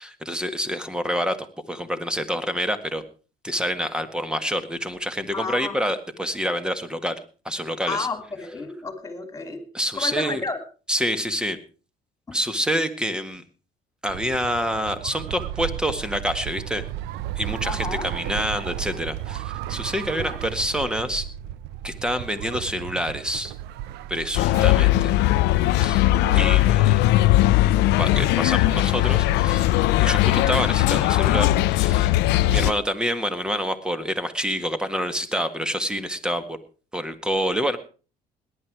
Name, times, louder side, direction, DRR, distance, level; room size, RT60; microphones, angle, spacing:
voice 1, 0.0-1.4 1.7-3.0 3.4-7.2 7.4-8.1 9.7-10.4 10.9-11.6 12.3-13.4 14.0-16.8 17.4-21.2 21.8-23.5 24.1-25.1 25.8-26.1 26.3-27.0 28.0-29.7 30.0-32.1 32.5-36.6 36.9-37.8, equal, 5° right, 11 dB, 1.7 m, -27 dB
voice 2, 5.3-5.8 7.9-9.6 9.9-10.6 12.3-12.4 17.6-18.1 20.1-20.4 26.1-26.7, left 4 dB, 20° left, 9 dB, 3.1 m, -32 dB
sound 1, 14.1-30.1, right 12 dB, 90° right, 0.7 m, -35 dB
sound 2, 24.3-32.7, left 16 dB, 90° left, 0.6 m, -19 dB
18.0 x 11.0 x 4.7 m, 0.37 s
cardioid pair, 110°, 17 cm